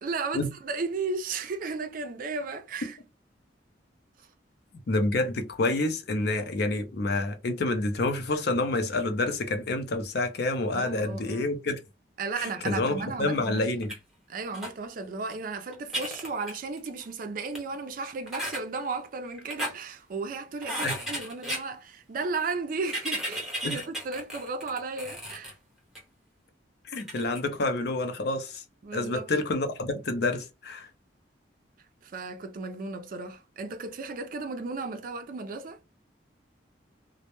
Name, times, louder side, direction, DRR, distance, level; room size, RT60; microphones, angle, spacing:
voice 1, 0.0-3.0 10.7-11.5 12.2-13.6 14.3-25.5 28.8-29.3 32.0-35.8, right 4 dB, 50° right, 0.4 m, -34 dB
voice 2, 4.9-11.8 12.4-13.9 20.8-21.0 23.6-23.8 26.8-28.6 28.9-30.9, left 2 dB, 60° left, 0.5 m, -28 dB
sound 1, 13.8-14.0 14.5-14.7 15.3-15.4 15.7-17.0 17.6-17.7 18.3-18.6 19.3-19.7 20.6-21.6 22.8-25.5 26.0-26.1 27.0-27.4, equal, ahead, 0.7 m, -34 dB
2.1 x 2.1 x 2.9 m
head